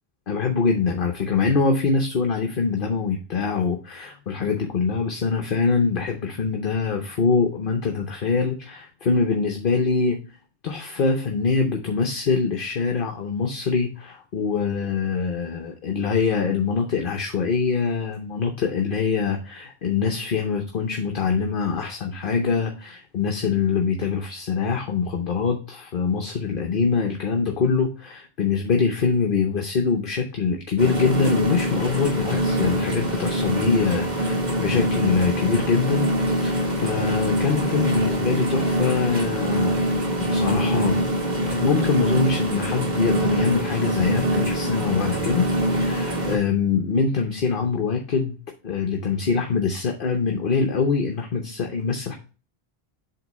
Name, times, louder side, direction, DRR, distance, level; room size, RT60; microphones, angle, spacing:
voice 1, 0.3-10.2 10.6-39.8 40.1-41.0 41.6-48.4 48.6-52.1, left 5 dB, 60° left, 3 dB, 1.0 m, -24 dB
sound 1, 30.8-46.4, equal, 45° right, 1.4 m, -24 dB
7.7 x 3.0 x 5.1 m, 0.34 s
omnidirectional pair, 1.0 m